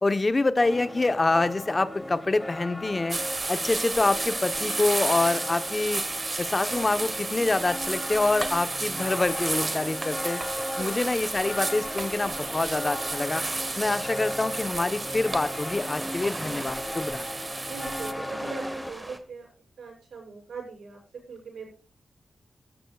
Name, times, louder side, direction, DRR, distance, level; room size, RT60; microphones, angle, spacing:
voice 1, 0.0-3.2 3.5-6.0 6.4-10.4 10.8-13.4 13.8-17.2, left 2 dB, 35° left, 10 dB, 1.1 m, -26 dB
sound 1, 0.6-18.9, left 1 dB, 15° left, 1.4 m, -37 dB
sound 2, 3.1-18.1, right 2 dB, 35° right, 1.4 m, -32 dB
sound 3, 8.9-19.2, right 1 dB, 10° right, 1.9 m, -42 dB
voice 2, 10.7-11.0 17.7-19.5 19.8-21.0 21.3-21.6, right 4 dB, 90° right, -2 dB, 7.3 m, -40 dB
18.5 x 13.5 x 2.4 m, 0.35 s
cardioid pair, 75°, 0 cm